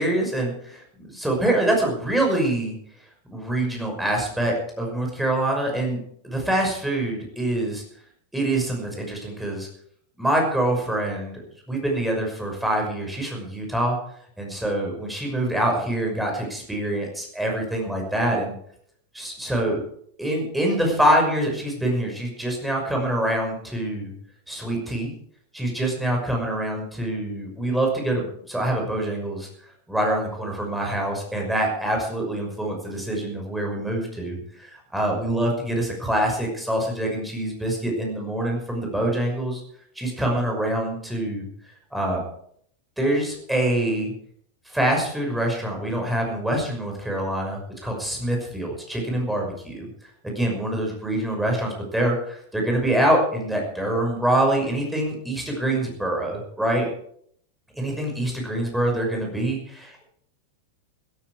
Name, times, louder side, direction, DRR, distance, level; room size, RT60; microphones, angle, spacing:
voice 1, 0.0-2.7 3.3-7.8 8.3-9.7 10.2-14.0 14.4-18.6 19.1-19.8 20.2-24.1 24.5-25.1 25.5-29.5 29.9-39.6 40.0-41.5 41.9-42.2 43.0-44.1 44.7-49.9 50.2-56.9 57.8-60.0, right 1 dB, 5° right, 1 dB, 5.9 m, -25 dB
16.0 x 14.5 x 4.9 m, 0.65 s
figure-of-eight pair, 90°, 0 cm